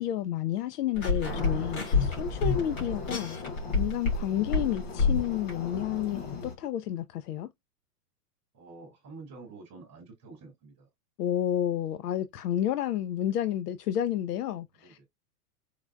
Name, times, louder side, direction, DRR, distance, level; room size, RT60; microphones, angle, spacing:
voice 1, 0.0-3.4 3.7-7.5 11.2-15.0, left 11 dB, 85° left, 0.5 m, -30 dB
sound 1, 1.0-4.2 4.5-5.5, left 4 dB, 60° left, 2.8 m, -28 dB
sound 2, 1.2-6.5, left 3 dB, 40° left, 1.1 m, -39 dB
voice 2, 8.5-10.9 14.8-15.0, right 3 dB, 5° right, 0.4 m, -48 dB
4.8 x 2.2 x 2.3 m
supercardioid pair, 175°, 46 cm